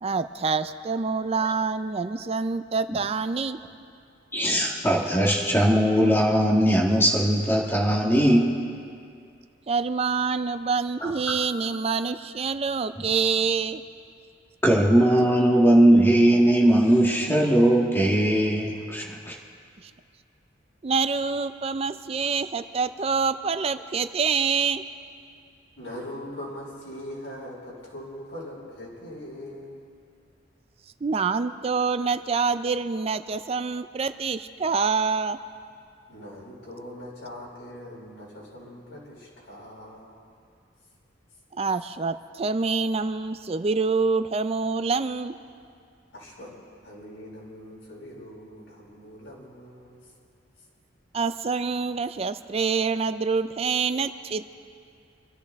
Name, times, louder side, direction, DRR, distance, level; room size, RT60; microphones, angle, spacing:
voice 1, 0.0-3.6 9.7-13.8 20.8-24.8 31.0-35.4 41.6-45.4 51.1-54.5, right 5 dB, 35° right, 11 dB, 0.4 m, -26 dB
voice 2, 4.3-8.6 11.0-11.1 14.6-19.3, right 1 dB, 10° left, -3 dB, 1.6 m, -20 dB
voice 3, 25.8-29.8 36.1-40.1 46.1-46.5 46.8-50.0, left 1 dB, 85° left, -5 dB, 5.2 m, -41 dB
26.5 x 13.5 x 3.5 m, 2.3 s
head